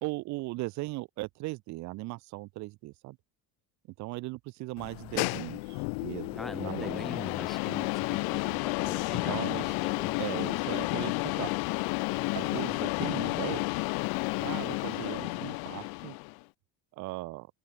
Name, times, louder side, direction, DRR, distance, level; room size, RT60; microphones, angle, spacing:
voice 1, 0.0-3.2 4.0-7.0 9.3-9.7 10.2-11.5 12.3-13.6 14.4-16.2 16.9-17.5, right 21 dB, 50° right, 0.7 m, -38 dB
sound 1, 4.8-16.4, left 35 dB, 75° left, 0.6 m, -31 dB
voice 2, 6.3-10.2, left 1 dB, ahead, 0.5 m, -42 dB
cardioid pair, 175°, 37 cm